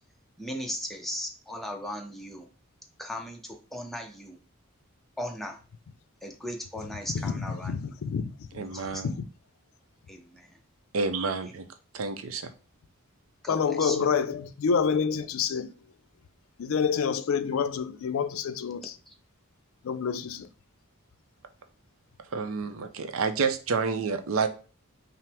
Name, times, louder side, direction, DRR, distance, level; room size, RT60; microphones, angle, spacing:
voice 1, 0.4-2.5 3.0-4.4 5.2-5.6 6.2-7.8 8.7-9.0 10.1-10.6 13.4-14.0 19.1-19.2, equal, ahead, 0.6 m, -37 dB
voice 2, 7.1-9.3 13.5-15.7 16.6-18.9 19.8-20.5, left 6 dB, 75° left, 0.4 m, -28 dB
voice 3, 8.5-9.1 10.9-11.7 11.9-12.5 22.3-24.5, right 4 dB, 75° right, 0.5 m, -29 dB
5.6 x 2.0 x 3.4 m
head